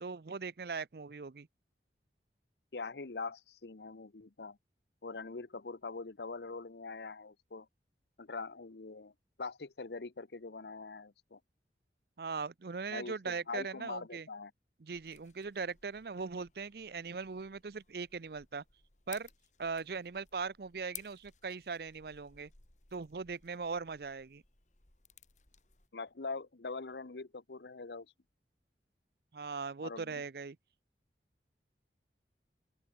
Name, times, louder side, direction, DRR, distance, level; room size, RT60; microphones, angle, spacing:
voice 1, 0.0-1.5 12.2-14.3 14.8-18.6 19.1-19.3 19.6-22.5 22.9-24.4 29.3-30.6, right 4 dB, 60° right, 0.6 m, -40 dB
voice 2, 2.7-4.6 5.0-7.7 8.2-9.1 9.4-11.4 12.9-14.5 25.9-28.1 29.8-30.2, left 4 dB, 75° left, 0.9 m, -43 dB
sound 1, 14.9-25.9, left 11 dB, 40° left, 2.2 m, -58 dB
open air
head